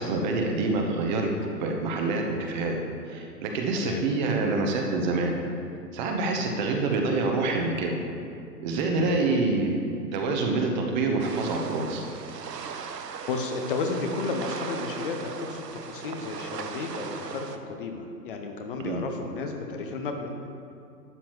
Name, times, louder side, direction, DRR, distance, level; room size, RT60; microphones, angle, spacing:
voice 1, 0.0-2.8 3.1-5.4 5.9-8.0 8.6-9.7 10.1-12.0 18.8-19.0, right 3 dB, 30° right, 2 dB, 1.0 m, -26 dB
voice 2, 3.7-4.0 9.0-9.2 12.7-20.5, left 4 dB, 35° left, 4 dB, 0.8 m, -33 dB
sound 1, 11.2-17.6, right 6 dB, 75° right, 0.8 m, -38 dB
12.0 x 8.7 x 3.1 m, 2.5 s
figure-of-eight pair, 120°, 49 cm